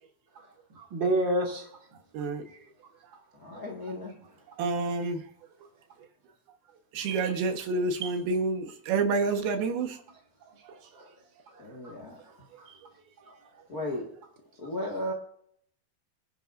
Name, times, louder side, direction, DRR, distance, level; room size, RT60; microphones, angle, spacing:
voice 1, 0.3-1.7 2.4-2.9 3.5-3.6 4.2-4.3 6.9-7.4 8.0-8.1 10.7-11.1 11.5-12.0 12.2-12.8 13.2-13.6 14.6-14.8, right 1 dB, 35° right, 2.4 m, -34 dB
voice 2, 3.4-4.1 11.6-12.2 13.7-14.1 14.6-15.1, left 1 dB, 40° left, 1.3 m, -35 dB
voice 3, 4.6-5.2 6.9-10.0, right 3 dB, 80° right, 3.1 m, -28 dB
25.0 x 10.0 x 2.6 m
omnidirectional pair, 4.3 m